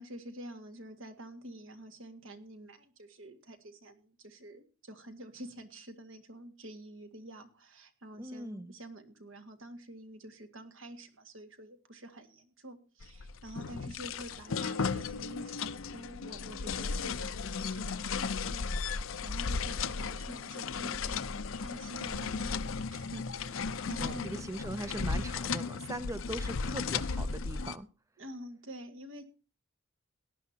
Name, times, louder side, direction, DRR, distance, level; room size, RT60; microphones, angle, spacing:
voice 1, 0.0-21.2 21.6-22.6 22.9-24.3 28.2-29.2, right 1 dB, 70° right, 7 dB, 1.8 m, -48 dB
voice 2, 8.2-8.7 24.0-27.9, right 1 dB, 15° right, 12 dB, 0.5 m, -40 dB
sound 1, 13.0-27.8, left 5 dB, 75° left, 0.6 m, -35 dB
18.0 x 10.5 x 2.8 m, 0.35 s
head